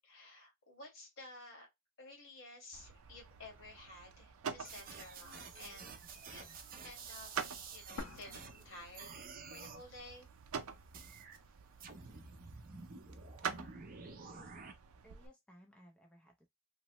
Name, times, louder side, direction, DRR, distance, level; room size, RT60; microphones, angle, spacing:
voice 1, 0.0-1.7 2.0-6.5 6.8-7.3 7.7-10.3, left 2 dB, 65° left, 1.5 m, -53 dB
sound 1, 2.7-15.3, right 6 dB, 90° right, 0.5 m, -48 dB
sound 2, 4.6-8.6 8.9-9.8 10.9-11.4 11.8-14.7, right 5 dB, 40° right, 0.6 m, -50 dB
sound 3, 8.0-9.9 10.2-10.3 11.0-12.0, left 3 dB, 85° left, 0.7 m, -50 dB
voice 2, 13.4-14.6 15.0-16.5, equal, 5° left, 0.5 m, -62 dB
3.1 x 2.0 x 2.9 m
head